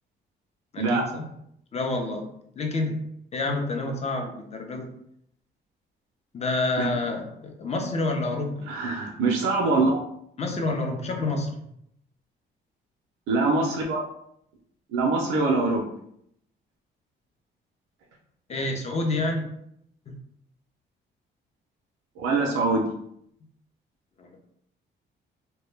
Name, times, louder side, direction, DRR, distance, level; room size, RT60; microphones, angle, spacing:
voice 1, 0.7-1.2 1.7-3.0 3.3-4.9 6.3-8.7 10.4-11.6 18.5-19.5 24.2-24.4, left 2 dB, 35° left, 3 dB, 0.5 m, -28 dB
voice 2, 8.7-10.0 13.3-14.0 14.9-15.9 22.2-22.9, right 3 dB, 85° right, 0 dB, 0.5 m, -23 dB
2.1 x 2.1 x 3.1 m, 0.72 s
cardioid pair, 90°, 20 cm